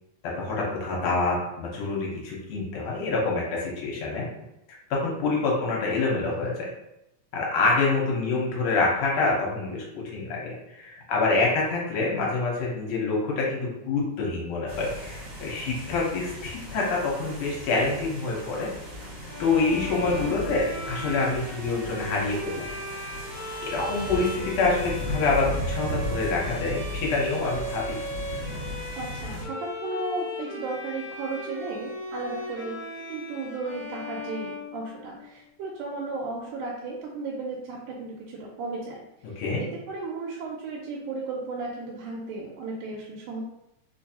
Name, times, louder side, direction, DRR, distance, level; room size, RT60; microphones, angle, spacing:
voice 1, 0.4-4.3 4.9-6.7 7.3-18.7 19.4-22.6 23.7-28.0 39.4-39.6, left 3 dB, 70° left, -3 dB, 1.8 m, -26 dB
sound 1, 14.7-29.4, left 1 dB, 60° right, 1.1 m, -36 dB
Bowed string instrument, 19.2-35.3, left 1 dB, 50° left, 1.2 m, -37 dB
voice 2, 28.9-32.8 33.1-39.0 39.3-43.4, right 3 dB, 90° right, -2 dB, 2.0 m, -34 dB
4.5 x 2.5 x 2.7 m, 0.88 s
omnidirectional pair, 3.4 m